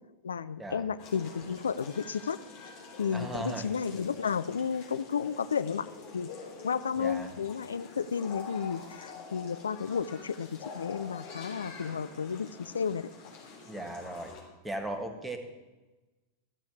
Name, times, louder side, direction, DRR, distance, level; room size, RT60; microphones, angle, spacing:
voice 1, 0.2-2.4 3.0-5.9 6.1-6.3 6.6-13.1, left 6 dB, 70° left, 15 dB, 0.4 m, -32 dB
sound 1, 1.0-14.4, left 5 dB, 45° left, 3.4 m, -47 dB
voice 2, 3.1-3.7 7.0-7.3 13.7-14.3 14.6-15.4, right 2 dB, 10° right, 6 dB, 1.6 m, -37 dB
13.5 x 7.0 x 7.8 m, 1.1 s
figure-of-eight pair, 90°, 0 cm